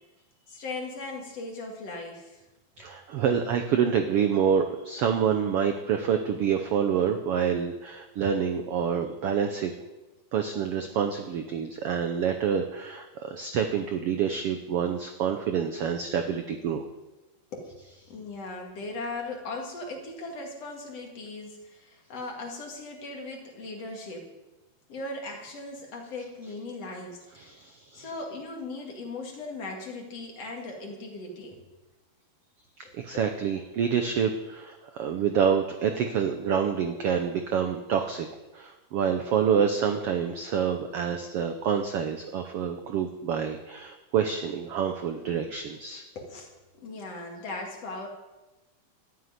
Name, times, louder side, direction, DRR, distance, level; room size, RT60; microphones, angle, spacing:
voice 1, 0.5-2.4 17.5-24.3 24.9-27.6 27.9-31.7 32.8-32.9 46.1-48.1, left 2 dB, 50° left, 0 dB, 3.1 m, -38 dB
voice 2, 2.8-9.7 10.3-16.9 27.4-28.1 32.8-38.3 38.5-46.0, right 7 dB, 80° right, 6 dB, 1.3 m, -27 dB
13.0 x 7.9 x 9.6 m, 1.1 s
omnidirectional pair, 3.8 m